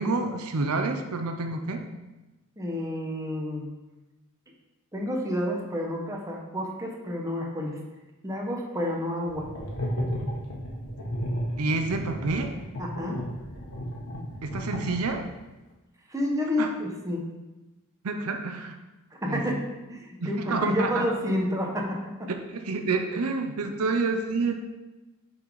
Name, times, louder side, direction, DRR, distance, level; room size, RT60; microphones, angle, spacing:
voice 1, 0.0-1.8 11.6-12.5 14.4-15.3 16.6-16.7 18.0-18.7 19.3-19.5 20.2-21.1 22.3-24.5, right 3 dB, 90° right, 5 dB, 0.6 m, -28 dB
voice 2, 2.6-3.7 4.9-7.8 8.2-9.5 12.8-13.2 16.1-17.2 19.2-19.6 19.9-22.3, left 1 dB, 15° right, -1 dB, 1.0 m, -29 dB
sound 1, 9.3-15.4, equal, 85° left, 1.5 m, -33 dB
6.9 x 4.2 x 4.7 m, 1.1 s
head